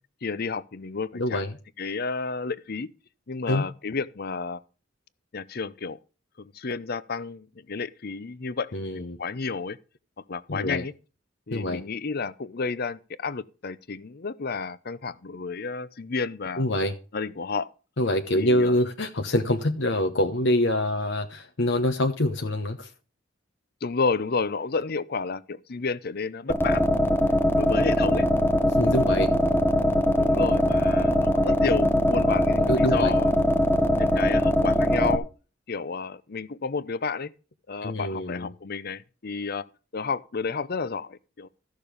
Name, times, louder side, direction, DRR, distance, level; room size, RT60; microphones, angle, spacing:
voice 1, 0.2-1.4 1.8-2.9 3.3-4.6 5.3-6.0 6.4-9.8 10.3-10.9 11.5-16.6 17.1-17.7 18.3-18.8 23.8-27.1 27.6-28.3 30.2-33.3 34.0-35.3 35.7-37.3 37.7-39.6 39.9-41.5, left 4 dB, 50° left, 0.7 m, -31 dB
voice 2, 1.1-1.5 3.5-3.7 8.7-9.2 10.5-10.8 11.5-11.8 16.6-16.9 18.0-22.9 28.6-29.3 32.6-33.2 37.8-38.5, left 1 dB, 70° left, 1.1 m, -25 dB
sound 1, 26.5-35.2, left 1 dB, 10° left, 1.0 m, -21 dB
14.0 x 6.6 x 5.1 m
head